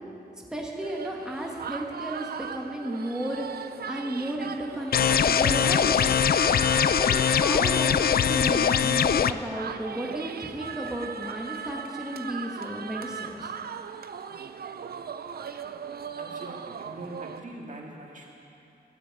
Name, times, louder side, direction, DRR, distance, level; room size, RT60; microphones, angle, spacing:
voice 1, 0.5-6.0 7.0-7.1 7.4-13.5, right 1 dB, 5° right, -2 dB, 1.4 m, -33 dB
sound 1, 0.8-17.4, right 7 dB, 65° right, 0.5 m, -38 dB
sound 2, 4.9-9.3, left 8 dB, 60° left, 0.4 m, -22 dB
voice 2, 16.2-18.3, right 1 dB, 50° right, -1 dB, 1.9 m, -43 dB
12.5 x 9.9 x 8.6 m, 2.7 s
wide cardioid pair, 130°, 17 cm